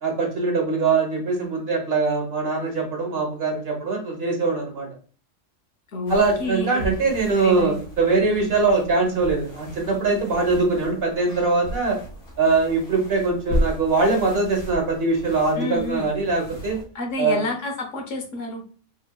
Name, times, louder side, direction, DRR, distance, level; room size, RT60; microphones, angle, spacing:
voice 1, 0.0-4.9 6.1-12.0 12.4-16.8 17.2-17.4, right 3 dB, 50° right, 1 dB, 1.4 m, -22 dB
sound 1, 6.1-16.9, equal, 50° left, 1.0 m, -34 dB
voice 2, 6.4-6.9 7.3-7.8 15.5-16.1 16.9-18.7, left 2 dB, 75° left, 4 dB, 1.3 m, -29 dB
4.4 x 3.4 x 2.3 m, 0.39 s
omnidirectional pair, 1.3 m